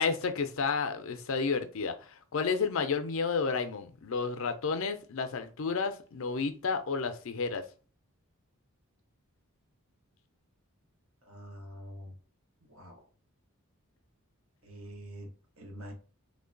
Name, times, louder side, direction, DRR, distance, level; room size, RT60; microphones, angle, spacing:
voice 1, 0.0-7.6, left 5 dB, 60° left, 8 dB, 0.5 m, -31 dB
voice 2, 11.3-12.1 12.7-13.0 14.6-15.3 15.6-15.9, equal, 65° right, 3 dB, 1.0 m, -45 dB
3.2 x 2.2 x 3.7 m, 0.38 s
head